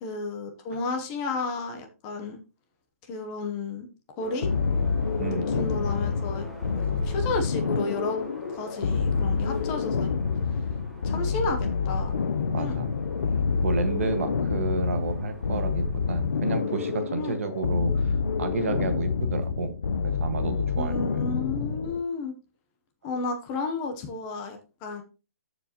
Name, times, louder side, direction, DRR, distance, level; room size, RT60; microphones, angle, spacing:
voice 1, 0.0-2.4 3.1-3.9 4.2-4.5 5.3-6.5 6.8-8.2 8.5-10.1 11.0-12.1 12.6-12.8 17.2-17.4 20.8-22.3 23.0-25.0, left 3 dB, 15° left, 5 dB, 0.8 m, -32 dB
sound 1, 4.2-17.5, equal, ahead, 1.2 m, -46 dB
sound 2, 4.4-22.0, left 5 dB, 70° left, 0.7 m, -27 dB
voice 2, 5.2-5.6 12.5-12.9 13.6-19.8 20.0-21.2, right 3 dB, 55° right, 8 dB, 1.5 m, -31 dB
13.5 x 4.8 x 2.9 m, 0.32 s
hypercardioid pair, 175°, 9 cm